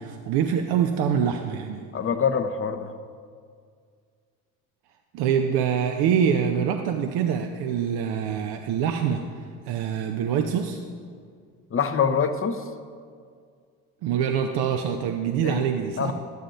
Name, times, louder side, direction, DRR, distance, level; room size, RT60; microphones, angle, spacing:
voice 1, 0.0-1.8 5.1-9.2 9.7-10.8 14.0-16.1, right 8 dB, 65° right, 5 dB, 0.7 m, -25 dB
voice 2, 1.9-2.9 11.7-12.6 15.4-15.6 16.0-16.1, left 6 dB, 30° left, 9 dB, 0.8 m, -24 dB
12.5 x 9.3 x 2.5 m, 2.1 s
hypercardioid pair, 50°, 42 cm